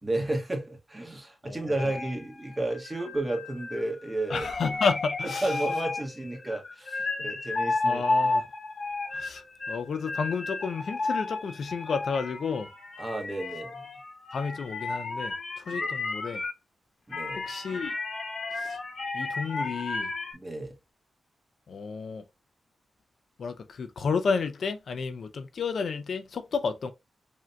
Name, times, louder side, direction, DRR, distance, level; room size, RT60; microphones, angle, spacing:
voice 1, 0.0-4.5 5.2-8.0 13.0-14.0 15.7-15.9 17.1-17.4 20.3-20.8, right 2 dB, 25° right, 1.4 m, -32 dB
voice 2, 1.5-1.9 4.3-5.5 7.8-8.4 9.1-12.7 14.3-16.4 17.4-17.9 18.5-18.8 19.1-20.1 21.7-22.2 23.4-26.9, left 5 dB, 70° left, 0.5 m, -31 dB
sound 1, 1.8-16.5 17.1-20.3, left 3 dB, 50° left, 1.1 m, -33 dB
5.0 x 2.8 x 2.3 m
cardioid pair, 70°, 0 cm